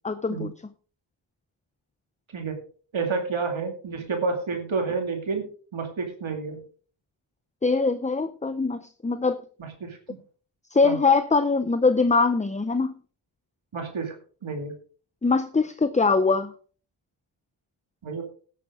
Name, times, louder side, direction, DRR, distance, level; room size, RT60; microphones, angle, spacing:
voice 1, 0.0-0.5 7.6-9.4 10.7-12.9 15.2-16.5, left 4 dB, 15° left, 11 dB, 0.6 m, -22 dB
voice 2, 2.9-5.4 5.7-6.6 9.6-10.2 10.8-11.0 13.7-14.1 14.4-14.7 18.0-18.2, right 4 dB, 75° right, 3 dB, 2.4 m, -29 dB
17.0 x 9.3 x 3.6 m, 0.42 s
wide cardioid pair, 100°, 48 cm